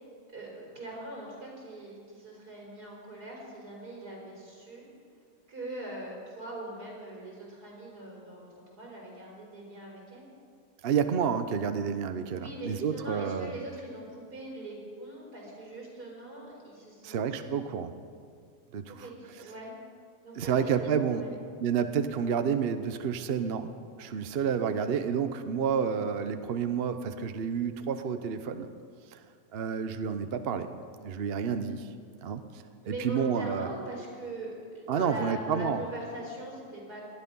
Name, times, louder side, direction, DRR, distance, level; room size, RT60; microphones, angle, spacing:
voice 1, 0.3-4.9 5.5-10.3 12.3-17.5 19.0-19.7 20.2-21.3 32.8-37.0, right 1 dB, 85° right, -3 dB, 5.1 m, -41 dB
voice 2, 10.8-13.5 17.0-17.9 18.7-19.1 20.4-21.2 21.6-23.7 24.0-28.7 29.1-29.2 29.5-30.7 31.0-31.9 32.2-32.4 32.9-33.7 34.9-35.8, right 7 dB, 50° right, 9 dB, 0.8 m, -29 dB
19.0 x 12.5 x 5.4 m, 2.1 s
omnidirectional pair, 1.6 m